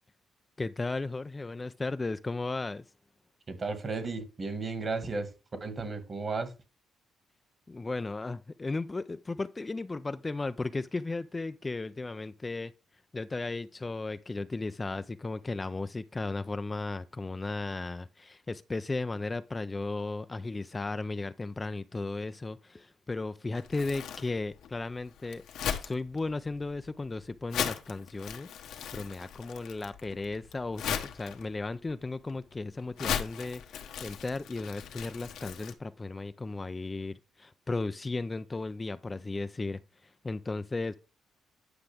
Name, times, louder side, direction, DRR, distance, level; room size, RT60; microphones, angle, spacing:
voice 1, 0.6-2.8 7.7-12.7 13.1-25.4 25.8-28.5 28.9-41.0, left 3 dB, 20° left, 0.3 m, -35 dB
voice 2, 3.5-5.3 5.6-6.5, right 3 dB, 35° right, 1.7 m, -34 dB
Crumpling crinkling, 23.5-35.7, left 8 dB, 80° left, 1.1 m, -38 dB
9.7 x 5.8 x 3.4 m
cardioid pair, 90°, 0 cm